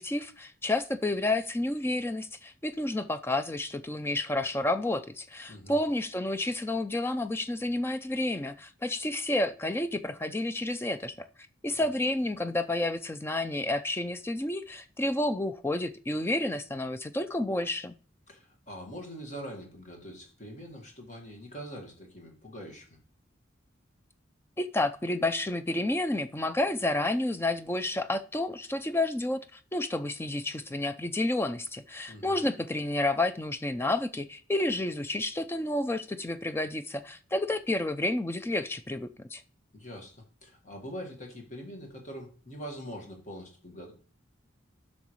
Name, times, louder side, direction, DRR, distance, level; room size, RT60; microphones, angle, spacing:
voice 1, 0.0-11.3 11.6-17.9 24.6-39.4, left 2 dB, 10° left, 11 dB, 0.3 m, -30 dB
voice 2, 5.5-5.8 11.7-11.9 18.3-23.0 32.1-32.4 39.7-43.9, equal, 35° left, 1 dB, 1.7 m, -43 dB
10.5 x 6.3 x 3.1 m, 0.40 s
head